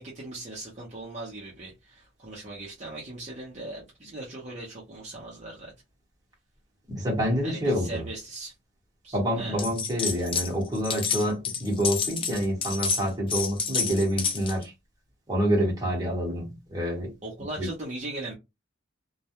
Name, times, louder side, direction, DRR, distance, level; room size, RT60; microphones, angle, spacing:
voice 1, 0.0-5.7 7.4-8.5 9.0-9.7 17.2-18.3, right 2 dB, 35° right, 0.7 m, -39 dB
voice 2, 6.9-8.0 9.1-14.7 15.3-17.1 17.6-17.7, equal, 20° right, 1.1 m, -27 dB
sound 1, 9.6-10.5 10.7-14.6, left 6 dB, 25° left, 0.4 m, -29 dB
2.3 x 2.2 x 2.8 m
head